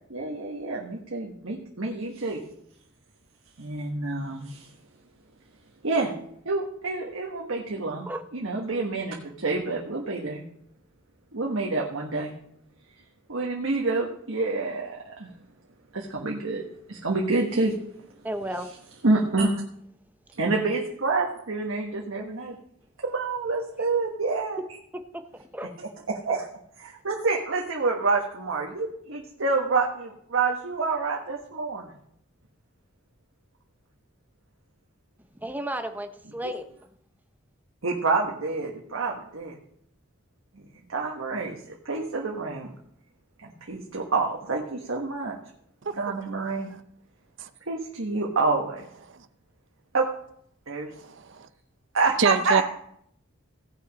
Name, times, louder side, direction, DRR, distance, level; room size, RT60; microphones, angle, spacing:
voice 1, 0.1-2.4 3.6-4.7 5.8-6.1 6.4-8.1 8.3-10.4 11.3-12.3 13.3-15.3 15.9-17.7 19.0-19.6 20.4-22.6 23.0-24.6 26.1-26.5 26.8-31.9 36.4-36.5 37.8-39.6 40.9-42.7 43.4-45.3 46.0-46.7 47.7-48.9 49.9-50.1 50.7-50.9 51.9-52.6, right 3 dB, 80° right, -1 dB, 1.3 m, -27 dB
voice 2, 18.2-18.7 24.9-25.0 25.5-25.7 35.4-36.6, right 1 dB, 10° right, 8 dB, 0.7 m, -33 dB
voice 3, 50.9-51.5 52.2-52.6, right 5 dB, 65° right, 13 dB, 0.7 m, -27 dB
16.5 x 5.8 x 5.2 m, 0.71 s
head